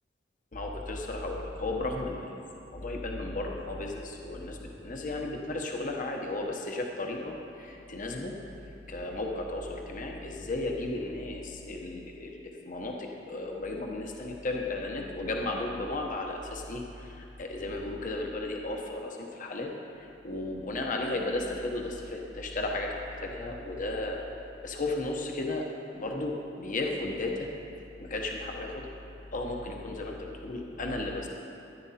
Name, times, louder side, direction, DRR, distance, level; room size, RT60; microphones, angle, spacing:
voice 1, 0.5-2.3 2.7-8.4 8.9-19.7 20.0-24.3 24.6-25.7 25.9-27.5 28.0-28.9 29.3-31.3, left 2 dB, 45° left, 1 dB, 0.9 m, -34 dB
14.0 x 10.0 x 4.2 m, 2.9 s
head